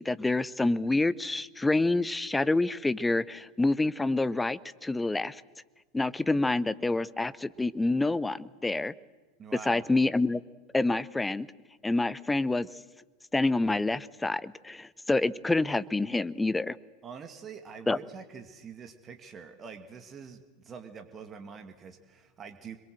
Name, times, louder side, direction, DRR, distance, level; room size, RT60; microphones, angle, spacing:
voice 1, 0.0-5.4 5.9-8.9 9.7-10.4 10.7-11.5 11.8-12.7 13.3-16.8 17.9-18.0, left 2 dB, 10° left, 19 dB, 0.8 m, -27 dB
voice 2, 9.4-9.8 17.0-22.8, right 6 dB, 30° right, 7 dB, 2.2 m, -45 dB
26.0 x 22.5 x 7.8 m, 1.2 s
figure-of-eight pair, 85°, 0 cm